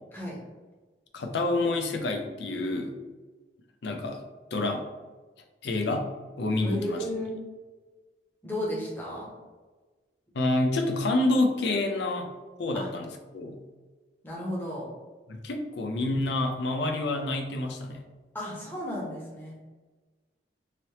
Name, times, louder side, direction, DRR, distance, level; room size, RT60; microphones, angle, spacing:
voice 1, 1.1-2.9 3.8-4.2 4.5-4.8 5.6-6.1 6.4-7.0 10.3-12.3 12.6-13.6 15.3-18.0, left 2 dB, 75° left, 4 dB, 0.5 m, -28 dB
voice 2, 6.6-7.4 8.4-9.3 12.7-12.9 14.2-14.9 18.3-19.5, left 1 dB, 10° left, -5 dB, 0.8 m, -33 dB
3.2 x 2.8 x 2.8 m, 1.3 s
head